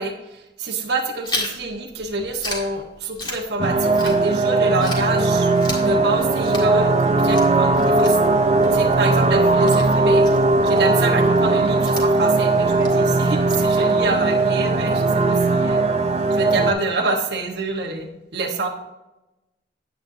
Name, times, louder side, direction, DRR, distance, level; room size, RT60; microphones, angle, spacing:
voice 1, 0.0-8.2 8.7-10.2 10.6-15.8 16.3-18.7, right 2 dB, 60° right, 2 dB, 1.2 m, -26 dB
Chewing mastication, 1.2-4.5 4.8-14.2, left 2 dB, 25° left, 1.8 m, -35 dB
sound 1, 3.6-16.7, right 3 dB, 35° right, 0.6 m, -18 dB
9.2 x 9.0 x 2.7 m, 0.99 s
head